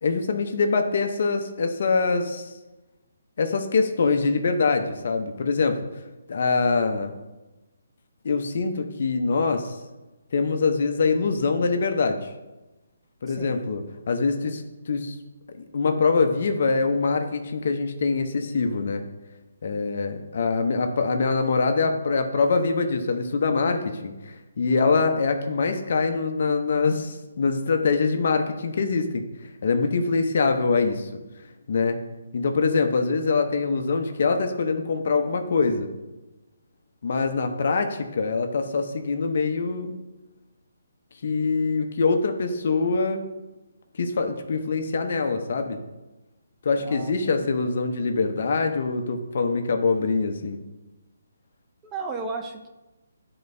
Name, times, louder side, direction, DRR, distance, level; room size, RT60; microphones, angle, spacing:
voice 1, 0.0-2.5 3.4-5.8 6.3-7.1 8.2-9.8 10.3-12.3 13.2-15.2 15.6-19.0 19.6-29.2 29.6-31.1 31.7-32.0 32.3-35.9 37.0-40.0 41.2-43.2 44.0-45.8 46.6-50.6, left 4 dB, 60° left, 6 dB, 0.8 m, -24 dB
voice 2, 13.3-13.6 46.8-47.5 51.8-52.7, right 4 dB, 15° right, 3 dB, 0.5 m, -35 dB
9.3 x 3.9 x 2.7 m, 1.1 s
hypercardioid pair, 155°, 0 cm